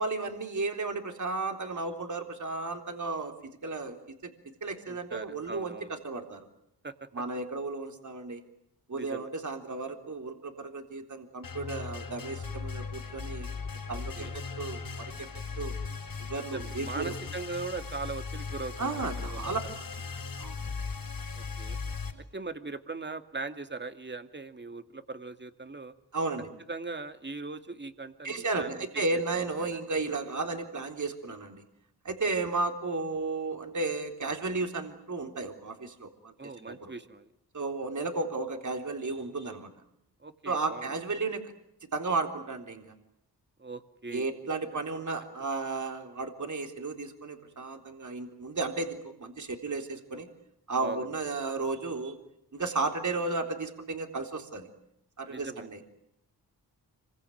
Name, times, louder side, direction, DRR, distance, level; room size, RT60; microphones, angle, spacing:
voice 1, 0.0-4.3 4.6-6.5 7.1-8.4 8.9-13.5 13.9-15.3 15.6-15.8 16.3-17.2 18.8-19.6 20.0-20.6 26.1-26.5 28.2-31.6 32.0-36.3 36.7-36.9 37.5-39.7 40.5-41.4 41.9-42.9 44.1-50.3 50.7-52.2 52.5-54.7 55.2-55.8, right 3 dB, 45° right, 5 dB, 3.8 m, -34 dB
voice 2, 4.9-5.9 6.8-6.9 8.9-9.3 13.9-14.4 16.5-19.6 21.3-21.8 22.3-25.9 26.7-28.9 29.3-29.8 36.4-37.3 40.2-40.9 43.6-44.3 50.8-51.1 55.3-55.8, right 3 dB, 25° right, 8 dB, 2.4 m, -40 dB
sound 1, 11.4-22.1, left 5 dB, 60° left, 6.2 m, -38 dB
26.0 x 23.5 x 9.3 m, 0.78 s
cardioid pair, 50°, 40 cm